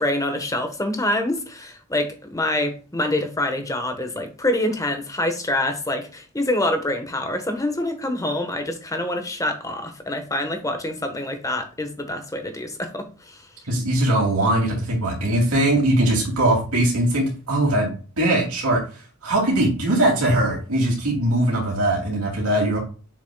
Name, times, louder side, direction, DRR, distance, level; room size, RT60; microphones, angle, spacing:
voice 1, 0.0-13.4, left 1 dB, 15° left, 6 dB, 1.2 m, -26 dB
voice 2, 13.7-17.9 18.2-18.8 19.2-22.8, right 1 dB, 85° right, -1 dB, 2.6 m, -20 dB
7.1 x 5.9 x 2.3 m, 0.36 s
head